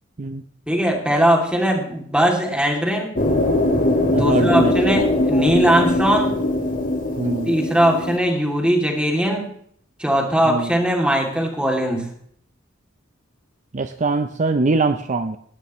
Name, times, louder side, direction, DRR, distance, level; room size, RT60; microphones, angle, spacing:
voice 1, 0.7-3.1 3.7-6.4 7.5-9.5 10.0-12.1, right 1 dB, 5° right, 1 dB, 2.7 m, -20 dB
sound 1, 3.2-8.2, left 1 dB, 40° left, 2.0 m, -21 dB
voice 2, 4.1-5.0 7.2-7.5 10.4-10.7 13.7-15.4, right 3 dB, 35° right, 9 dB, 0.6 m, -22 dB
18.5 x 12.5 x 3.1 m, 0.64 s
head